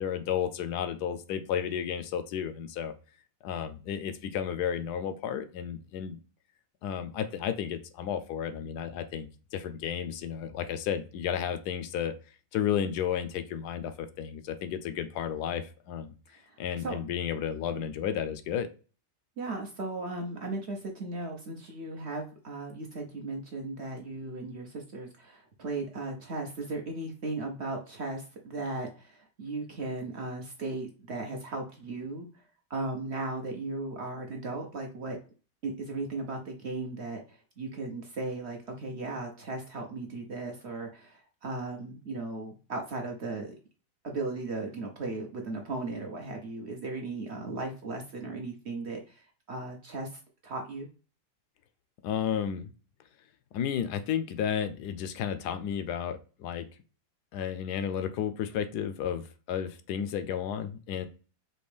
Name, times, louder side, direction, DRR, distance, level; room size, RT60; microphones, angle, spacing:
voice 1, 0.0-2.9 3.4-6.2 6.8-12.1 12.5-16.1 16.6-18.7 52.0-52.7 53.5-56.7 57.3-61.1, left 8 dB, 75° left, 11 dB, 1.1 m, -32 dB
voice 2, 16.3-17.0 19.4-32.4 32.7-35.2 35.6-43.5 44.0-50.9, right 2 dB, 55° right, 2 dB, 0.8 m, -37 dB
4.3 x 3.0 x 3.3 m, 0.35 s
omnidirectional pair, 1.8 m